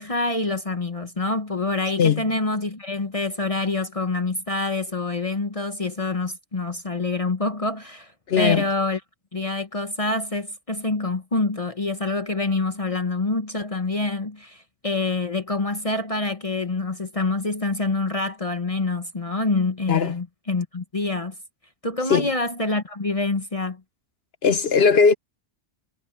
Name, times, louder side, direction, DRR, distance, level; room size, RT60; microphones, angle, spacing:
voice 1, 0.0-8.1 8.4-9.0 9.3-21.3 21.8-23.8, left 3 dB, 30° left, 1.1 m, -26 dB
voice 2, 8.3-8.6 19.9-20.1 22.1-22.3 24.4-25.1, left 6 dB, 60° left, 1.0 m, -18 dB
omnidirectional pair, 1.2 m